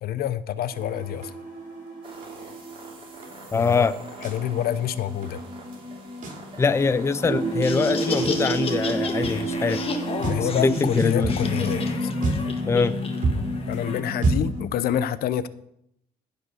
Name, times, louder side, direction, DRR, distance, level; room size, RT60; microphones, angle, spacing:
voice 1, 0.0-1.3 3.5-3.9 4.2-5.4 10.2-12.1 13.7-15.5, left 10 dB, 65° left, 16 dB, 0.6 m, -27 dB
sound 1, 0.7-14.6, right 1 dB, 50° right, 3.6 m, -29 dB
sound 2, 2.0-10.8, right 3 dB, 30° right, 3.8 m, -46 dB
voice 2, 3.5-3.9 6.6-9.8 10.4-11.3 12.7-13.0, left 4 dB, 15° left, 14 dB, 0.5 m, -23 dB
Laughter, 7.4-14.0, left 4 dB, 35° left, 1.5 m, -33 dB
15.0 x 5.1 x 6.4 m, 0.76 s
cardioid pair, 110°, 17 cm